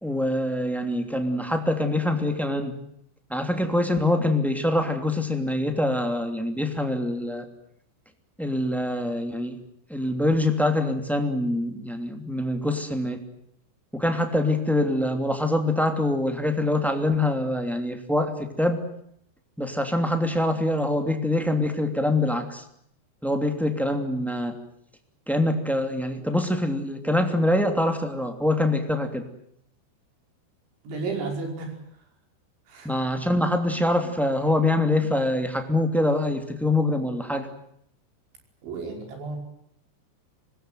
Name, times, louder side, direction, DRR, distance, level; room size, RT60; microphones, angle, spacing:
voice 1, 0.0-2.7 3.3-7.5 8.4-9.6 9.9-13.2 13.9-18.9 19.6-22.6 23.2-24.6 25.3-29.3 32.8-37.5, left 1 dB, ahead, 6 dB, 1.5 m, -24 dB
voice 2, 30.8-31.7 32.7-32.9 38.6-39.4, right 4 dB, 85° right, 3 dB, 7.7 m, -32 dB
25.5 x 21.5 x 9.4 m, 0.72 s
omnidirectional pair, 5.2 m